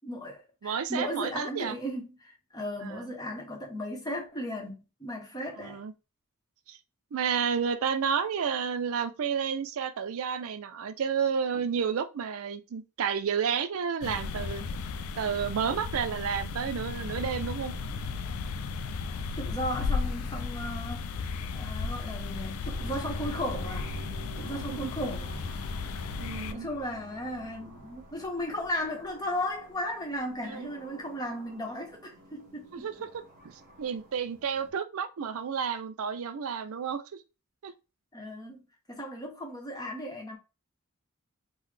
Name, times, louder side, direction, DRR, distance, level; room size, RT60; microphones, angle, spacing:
voice 1, 0.0-5.8 19.4-21.1 21.5-23.9 24.4-25.4 26.5-32.9 38.1-38.6 38.9-40.4, equal, 20° left, 0.8 m, -36 dB
voice 2, 0.6-1.8 2.8-3.1 5.6-5.9 6.7-6.8 7.1-14.7 15.2-17.7 24.5-24.9 26.2-26.7 30.4-30.7 32.7-37.1 37.6-37.7, right 7 dB, 75° right, 0.4 m, -31 dB
sound 1, 14.0-26.5, left 4 dB, 80° left, 0.3 m, -35 dB
sound 2, 22.6-34.7, right 2 dB, 35° right, 0.8 m, -46 dB
3.8 x 2.0 x 3.2 m
head